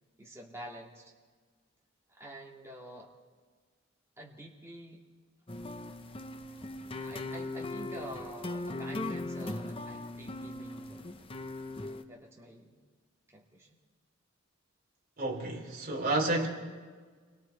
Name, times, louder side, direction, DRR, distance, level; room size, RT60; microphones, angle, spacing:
voice 1, 0.2-1.1 2.1-3.1 4.2-5.0 7.0-11.1 12.1-12.8 13.3-13.7, right 1 dB, 15° right, -3 dB, 2.6 m, -48 dB
sound 1, 5.5-12.0, left 2 dB, 25° left, 0.8 m, -39 dB
voice 2, 15.2-16.5, right 2 dB, 40° right, 0 dB, 3.4 m, -30 dB
29.0 x 22.5 x 4.6 m, 1.5 s
head